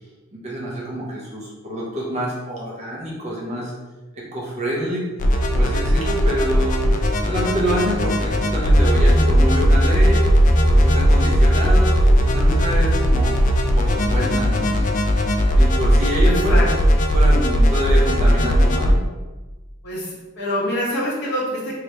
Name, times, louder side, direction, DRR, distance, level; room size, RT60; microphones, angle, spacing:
voice 1, 0.3-3.7 4.1-5.0 5.5-6.8 7.3-10.2 10.6-13.3 13.7-14.9 15.6-16.6 17.1-19.0, equal, 30° right, -4 dB, 0.8 m, -26 dB
sound 1, 5.2-18.9, equal, 40° left, 0.3 m, -17 dB
voice 2, 16.2-17.0 19.8-21.8, left 1 dB, 55° left, -6 dB, 1.1 m, -26 dB
3.2 x 2.8 x 3.2 m, 1.2 s
head